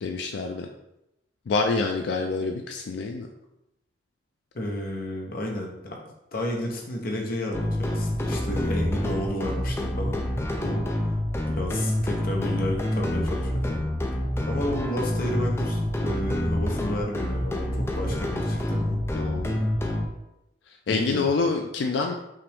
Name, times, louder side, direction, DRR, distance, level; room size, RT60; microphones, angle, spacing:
voice 1, 0.0-0.7 1.5-3.3 19.1-19.6 20.7-22.1, left 4 dB, 80° left, 4 dB, 0.4 m, -27 dB
voice 2, 4.5-6.0 6.3-10.3 10.6-11.2 11.5-13.9 14.5-19.0 20.9-21.3, left 1 dB, 55° left, 0 dB, 0.9 m, -31 dB
sound 1, 7.5-20.1, left 1 dB, 15° left, 0.4 m, -27 dB
5.6 x 2.5 x 3.5 m, 0.89 s
head